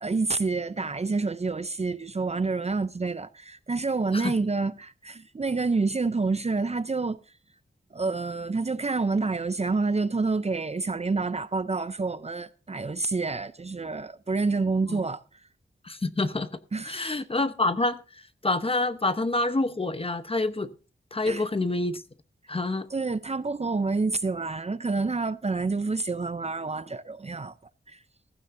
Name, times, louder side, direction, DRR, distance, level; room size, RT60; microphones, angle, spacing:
voice 1, 0.0-7.2 7.9-15.2 16.7-17.2 21.2-21.4 22.9-27.5 27.9-28.0, right 3 dB, 35° right, 0.5 m, -28 dB
voice 2, 15.8-16.5 16.8-18.0 18.4-20.7 21.1-22.0 22.5-22.9, left 2 dB, 30° left, 0.9 m, -27 dB
15.0 x 15.0 x 2.6 m
wide cardioid pair, 100°, 20 cm